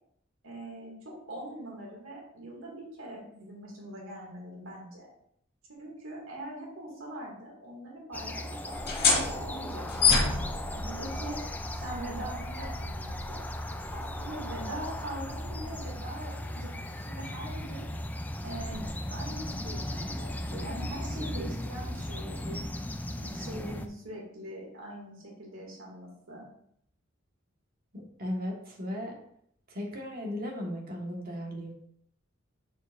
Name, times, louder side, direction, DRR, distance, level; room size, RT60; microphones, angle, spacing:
voice 1, 0.4-5.1 5.8-10.2 10.7-11.4 11.7-13.4 13.9-16.7 17.0-17.9 18.4-22.6 23.2-26.4, right 1 dB, 80° right, -3 dB, 2.3 m, -42 dB
sound 1, 8.1-23.9, left 1 dB, 10° left, 0.4 m, -37 dB
sound 2, 8.7-16.0, left 4 dB, 50° left, 1.8 m, -31 dB
voice 2, 27.9-29.2 29.7-31.8, equal, 50° right, 0 dB, 1.5 m, -36 dB
6.9 x 6.5 x 2.6 m, 0.69 s
head